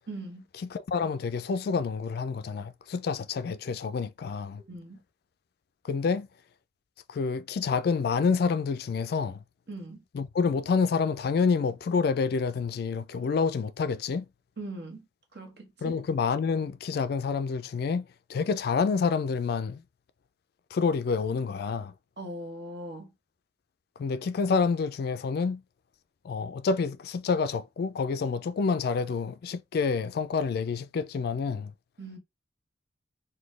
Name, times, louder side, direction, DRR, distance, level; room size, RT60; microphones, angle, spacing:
voice 1, 0.1-0.4 4.7-5.0 9.7-10.0 14.6-15.1 15.3-16.0 22.2-23.1 32.0-32.2, right 1 dB, 60° right, 1.1 m, -40 dB
voice 2, 0.7-4.6 5.8-6.3 7.1-9.4 10.1-14.3 15.8-19.8 20.7-21.9 24.0-25.6 26.2-31.7, left 5 dB, 55° left, 0.3 m, -28 dB
4.0 x 2.2 x 3.1 m
head